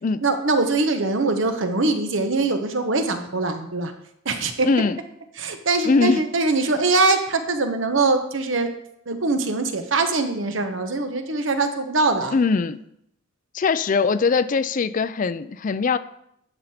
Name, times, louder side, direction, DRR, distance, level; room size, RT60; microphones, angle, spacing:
voice 1, 0.2-3.9 4.2-4.7 5.4-8.7 9.1-12.4, right 3 dB, 75° right, 7 dB, 1.1 m, -22 dB
voice 2, 4.6-5.0 5.9-6.2 12.3-12.8 13.5-16.0, left 4 dB, 40° left, 14 dB, 0.4 m, -21 dB
11.0 x 6.5 x 4.3 m, 0.76 s
head